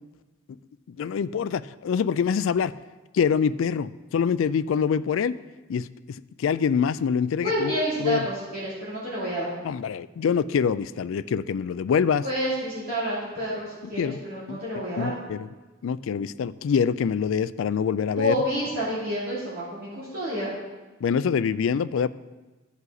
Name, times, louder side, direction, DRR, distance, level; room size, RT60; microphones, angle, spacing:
voice 1, 0.9-2.7 3.1-5.4 5.7-7.7 8.0-8.3 9.6-12.2 13.9-14.2 14.5-14.6 15.0-15.5 15.8-18.3 21.0-22.1, left 7 dB, 65° left, 15 dB, 0.3 m, -25 dB
voice 2, 7.4-9.5 12.2-15.1 18.0-20.5, equal, 45° right, -9 dB, 2.8 m, -29 dB
14.5 x 5.4 x 4.0 m, 1.2 s
head